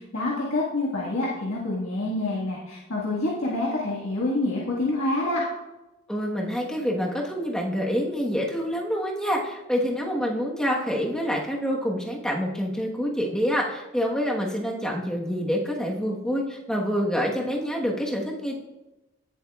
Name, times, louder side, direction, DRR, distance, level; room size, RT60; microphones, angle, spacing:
voice 1, 0.0-5.4, left 2 dB, 70° left, -5 dB, 1.7 m, -27 dB
voice 2, 6.1-18.6, equal, 5° left, -2 dB, 1.3 m, -27 dB
18.0 x 7.3 x 2.4 m, 0.99 s
head